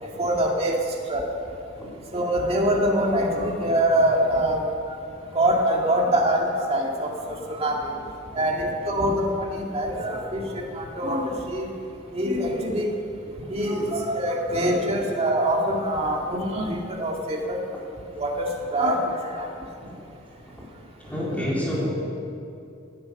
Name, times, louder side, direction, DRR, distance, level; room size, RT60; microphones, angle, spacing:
voice 1, 0.0-0.7 1.1-1.2 2.1-4.7 5.3-7.8 8.3-11.7 12.1-12.9 13.5-17.6 18.2-19.0 19.3-19.5, right 1 dB, 30° right, -1 dB, 2.1 m, -24 dB
voice 2, 21.0-21.9, equal, 10° left, -6 dB, 4.1 m, -30 dB
19.0 x 11.0 x 6.6 m, 2.7 s
head